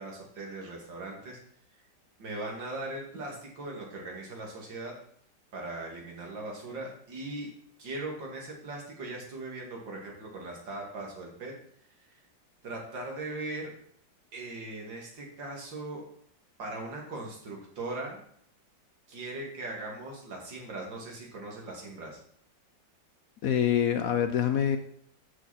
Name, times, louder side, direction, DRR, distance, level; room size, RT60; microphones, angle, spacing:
voice 1, 0.0-1.4 2.2-5.0 5.5-7.5 7.8-11.5 12.6-13.7 14.3-16.0 16.6-18.2 19.1-22.2, right 2 dB, 85° right, -1 dB, 3.1 m, -39 dB
voice 2, 23.4-24.8, left 9 dB, 65° left, 7 dB, 0.9 m, -25 dB
12.5 x 6.4 x 4.3 m, 0.64 s
omnidirectional pair, 2.0 m